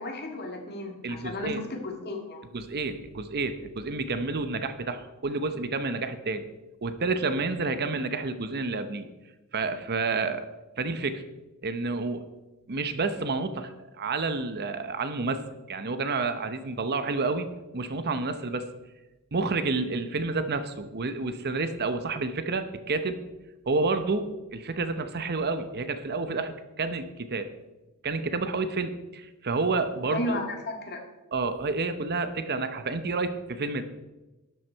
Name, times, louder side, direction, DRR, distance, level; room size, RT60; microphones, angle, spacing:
voice 1, 0.0-2.4 30.1-31.0, left 2 dB, 50° left, 2 dB, 2.0 m, -33 dB
voice 2, 1.0-1.6 2.5-6.4 6.8-9.1 9.5-10.5 10.8-11.2 11.6-12.3 12.7-13.7 14.0-15.4 15.7-17.5 17.7-18.7 19.3-23.2 23.7-27.5 28.0-30.4 31.3-33.8, right 3 dB, 45° right, 10 dB, 0.8 m, -29 dB
12.0 x 9.3 x 4.6 m, 1.1 s
head